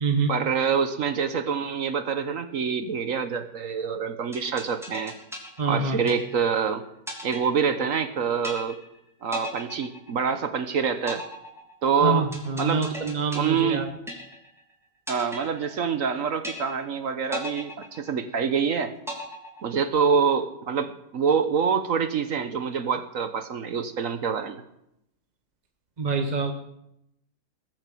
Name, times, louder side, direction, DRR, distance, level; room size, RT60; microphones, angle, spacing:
voice 1, 0.3-5.1 5.7-6.8 7.2-8.8 9.2-11.2 11.8-12.3 12.6-12.8 13.3-13.9 15.1-18.9 19.6-24.6, right 6 dB, 60° right, 10 dB, 1.3 m, -26 dB
sound 1, 4.3-6.6 7.1-8.1 8.4-9.0 9.3-10.6 11.1-14.6 15.1-16.1 16.4-17.0 17.3-18.6 19.1-20.1, equal, ahead, 3.1 m, -37 dB
voice 2, 5.6-6.0 12.0-13.8 26.0-26.5, right 4 dB, 30° right, 4 dB, 1.1 m, -26 dB
19.5 x 7.9 x 7.7 m, 0.80 s
omnidirectional pair, 1.6 m